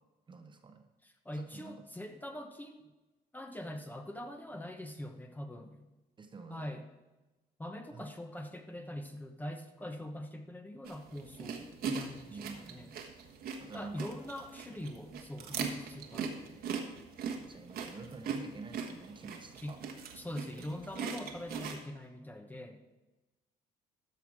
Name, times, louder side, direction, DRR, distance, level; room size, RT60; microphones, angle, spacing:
voice 1, 0.3-0.9 1.3-1.7 6.2-6.8 7.9-8.0 12.3-12.9 13.6-14.1 17.3-19.8 20.5-20.8, right 4 dB, 30° right, 6 dB, 1.0 m, -48 dB
voice 2, 1.0-2.9 3.3-5.9 6.5-6.8 7.6-12.9 13.7-16.6 19.6-19.7 20.1-22.8, left 1 dB, 10° left, 5 dB, 1.0 m, -43 dB
sound 1, 10.8-21.8, right 6 dB, 65° right, 1.4 m, -41 dB
13.5 x 5.8 x 4.8 m, 1.1 s
cardioid pair, 110°, 17 cm